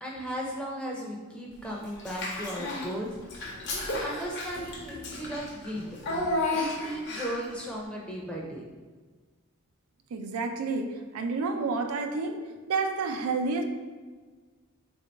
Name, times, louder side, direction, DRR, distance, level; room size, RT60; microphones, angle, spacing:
voice 1, 0.0-3.4 3.7-5.9 6.5-8.6, equal, 5° left, -3 dB, 0.5 m, -36 dB
Child speech kid speaking / Bathtub (filling or washing), 2.0-2.9 3.3-7.5, left 2 dB, 50° left, 0.7 m, -33 dB
voice 2, 10.1-13.6, right 4 dB, 85° right, 5 dB, 0.4 m, -30 dB
3.7 x 2.6 x 4.4 m, 1.4 s
head